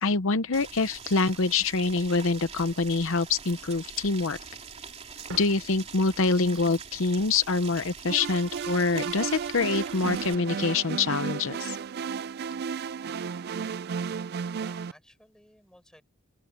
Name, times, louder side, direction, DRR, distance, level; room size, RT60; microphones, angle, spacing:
voice 1, 0.0-4.4 5.3-11.8, left 4 dB, 65° left, 0.8 m, -25 dB
Boiling, 0.5-10.3, right 6 dB, 30° right, 3.0 m, -44 dB
sound 1, 5.3-12.7, right 3 dB, 80° right, 3.3 m, -56 dB
sound 2, 8.1-14.9, right 6 dB, 50° right, 0.4 m, -33 dB
voice 2, 14.5-16.0, equal, 5° left, 5.4 m, -57 dB
open air
head